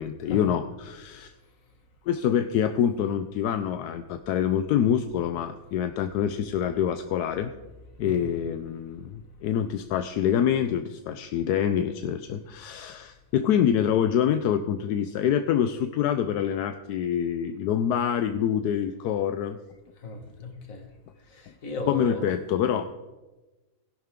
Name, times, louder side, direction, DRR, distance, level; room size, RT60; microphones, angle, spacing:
voice 1, 0.0-1.3 2.1-7.5 8.0-19.6 21.9-23.0, left 9 dB, 80° left, 9 dB, 1.1 m, -26 dB
voice 2, 20.0-20.9 21.3-22.2, left 2 dB, 55° left, 5 dB, 1.9 m, -36 dB
16.5 x 11.5 x 3.6 m, 1.1 s
omnidirectional pair, 1.7 m